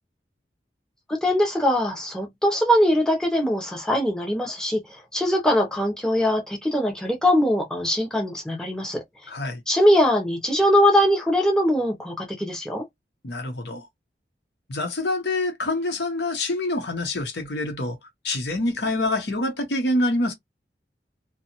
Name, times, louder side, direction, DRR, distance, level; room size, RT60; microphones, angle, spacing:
voice 1, 1.1-9.0 9.7-12.8, equal, 5° left, 0.6 m, -21 dB
voice 2, 9.3-9.6 13.2-13.9 14.7-18.0 18.2-20.3, left 2 dB, 75° left, 0.8 m, -26 dB
2.7 x 2.2 x 2.8 m
head